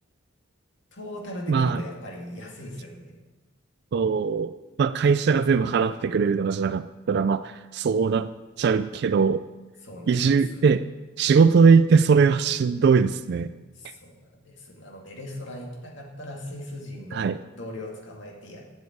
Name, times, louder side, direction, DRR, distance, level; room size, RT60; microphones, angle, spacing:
voice 1, 0.9-3.1 9.8-10.7 13.7-18.6, equal, 65° left, -1 dB, 2.3 m, -38 dB
voice 2, 1.5-1.8 3.9-4.5 4.8-8.3 8.6-9.4 10.1-10.9 11.2-13.5 17.1-17.4, right 5 dB, 55° right, 12 dB, 0.3 m, -20 dB
7.8 x 7.4 x 8.4 m, 1.2 s
head